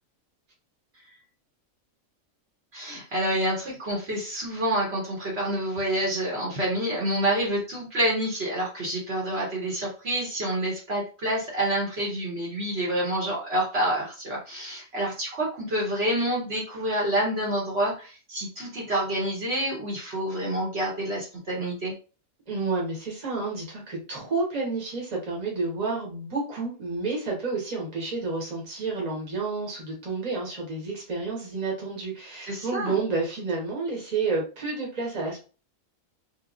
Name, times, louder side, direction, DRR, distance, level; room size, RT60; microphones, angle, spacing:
voice 1, 2.7-21.9 32.5-32.9, right 1 dB, 55° right, -4 dB, 1.2 m, -28 dB
voice 2, 22.5-35.4, right 3 dB, 35° right, -2 dB, 1.1 m, -30 dB
2.9 x 2.4 x 2.4 m, 0.34 s
omnidirectional pair, 1.4 m